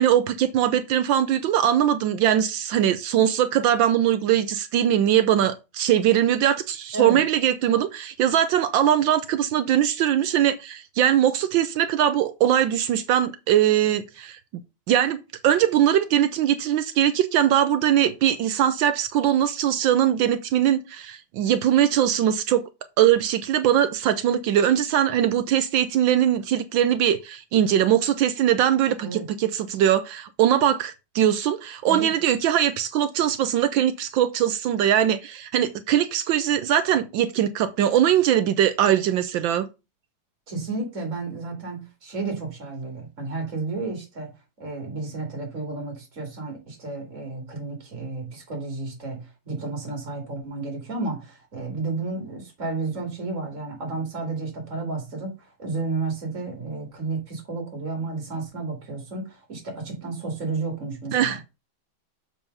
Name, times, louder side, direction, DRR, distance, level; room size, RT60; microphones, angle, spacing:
voice 1, 0.0-14.4 14.9-22.6 23.0-39.7 61.1-61.4, right 10 dB, 75° right, 1.3 m, -21 dB
voice 2, 29.0-29.3 31.9-32.1 40.5-44.3 44.6-61.4, right 3 dB, 40° right, 3.0 m, -32 dB
6.9 x 4.6 x 5.4 m
omnidirectional pair, 2.2 m